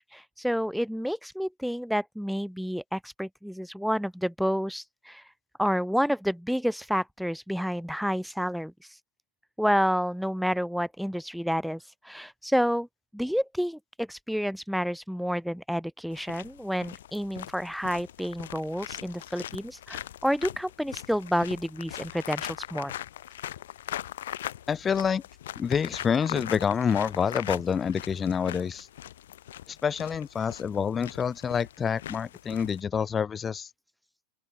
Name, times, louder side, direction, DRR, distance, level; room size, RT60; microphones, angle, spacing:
voice 1, 0.0-5.2 5.6-8.7 9.6-12.9 13.1-22.9, equal, ahead, 3.5 m, -29 dB
sound 1, 16.1-32.8, left 12 dB, 60° left, 7.8 m, -41 dB
voice 2, 24.7-25.2 25.6-28.9 29.7-33.7, left 7 dB, 20° left, 2.9 m, -27 dB
open air
figure-of-eight pair, 90°, 0 cm